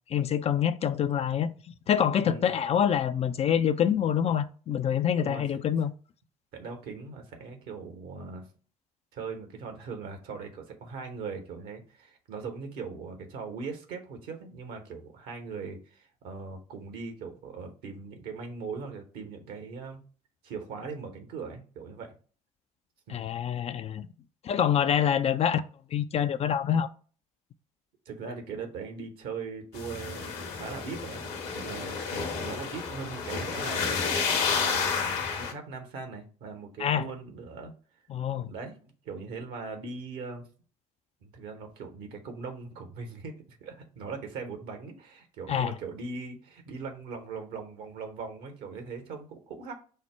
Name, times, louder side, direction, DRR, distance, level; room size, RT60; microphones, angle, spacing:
voice 1, 0.1-1.5 1.9-5.9 23.1-24.1 24.4-25.6 25.9-26.9 36.8-37.0 38.1-38.5 45.5-45.7, left 9 dB, 35° left, 0.4 m, -26 dB
voice 2, 2.2-2.5 5.2-5.4 6.5-8.5 9.1-20.0 20.4-22.1 23.1-23.3 28.0-33.9 34.5-37.7 38.5-40.5 41.2-49.7, right 4 dB, 60° right, 1.1 m, -40 dB
sound 1, 29.7-35.5, left 5 dB, 65° left, 1.0 m, -31 dB
5.5 x 2.1 x 4.4 m
figure-of-eight pair, 55°, 18 cm